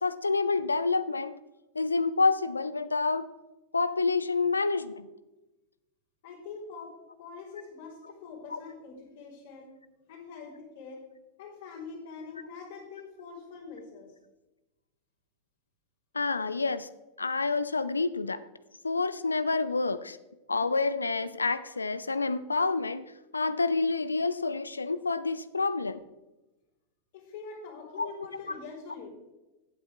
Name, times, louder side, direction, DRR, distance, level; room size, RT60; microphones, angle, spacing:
voice 1, 0.0-1.4 1.8-3.3 3.7-5.1 8.5-8.6 16.1-16.9 17.2-18.4 18.8-20.2 20.5-26.0 28.0-28.6, left 3 dB, 80° left, 15 dB, 0.4 m, -28 dB
voice 2, 6.2-9.7 10.1-11.0 11.4-14.1 27.1-29.1, left 5 dB, 55° left, -5 dB, 3.5 m, -44 dB
15.0 x 8.2 x 3.3 m, 1.1 s
figure-of-eight pair, 90°, 0 cm